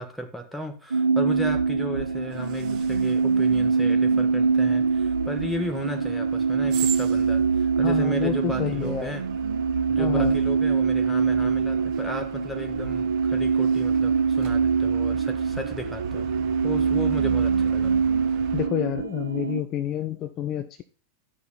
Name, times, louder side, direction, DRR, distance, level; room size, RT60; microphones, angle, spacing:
voice 1, 0.0-9.3 9.9-16.3 16.6-17.9, equal, ahead, 4 dB, 1.6 m, -35 dB
sound 1, 0.9-19.6, right 5 dB, 75° right, 0.3 m, -24 dB
sound 2, 2.3-18.7, right 11 dB, 40° right, 0.9 m, -40 dB
voice 2, 7.8-9.2 10.0-10.4 18.5-20.8, left 11 dB, 35° left, 11 dB, 0.6 m, -29 dB
12.0 x 5.8 x 4.0 m, 0.38 s
figure-of-eight pair, 90°, 0 cm